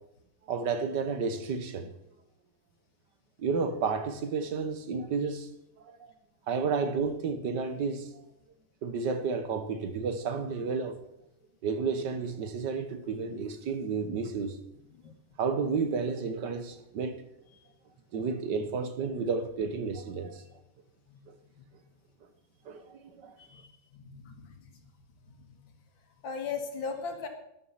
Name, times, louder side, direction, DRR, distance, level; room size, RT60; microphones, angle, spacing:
voice 1, 0.5-1.9 3.4-5.5 5.9-6.1 6.5-8.1 8.8-10.9 11.6-14.6 15.4-17.2 18.1-20.4 22.7-23.3, right 5 dB, 65° right, 1.7 m, -31 dB
voice 2, 23.4-24.5 25.2-25.6 26.2-27.3, left 5 dB, 85° left, 2.5 m, -38 dB
13.0 x 10.5 x 5.7 m
omnidirectional pair, 2.0 m